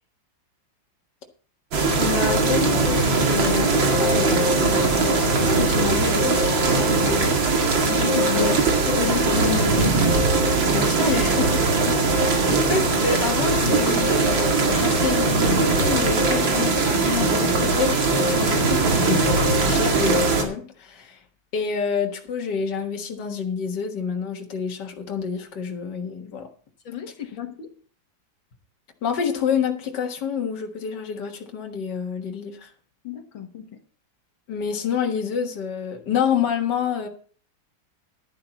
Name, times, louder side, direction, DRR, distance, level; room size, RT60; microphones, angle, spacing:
sound 1, 1.7-20.4, right 3 dB, 85° right, 2.9 m, -20 dB
voice 1, 2.0-7.4 8.3-8.5 10.7-11.5 12.1-12.2 12.7-21.2 21.5-26.5 29.0-32.7 34.5-37.1, left 6 dB, 65° left, 2 dB, 2.2 m, -28 dB
voice 2, 7.9-8.5 8.9-10.0 11.9-12.0 26.8-27.7 33.0-33.7, left 8 dB, 80° left, 4 dB, 2.2 m, -29 dB
11.5 x 11.5 x 4.1 m, 0.42 s
omnidirectional pair, 2.1 m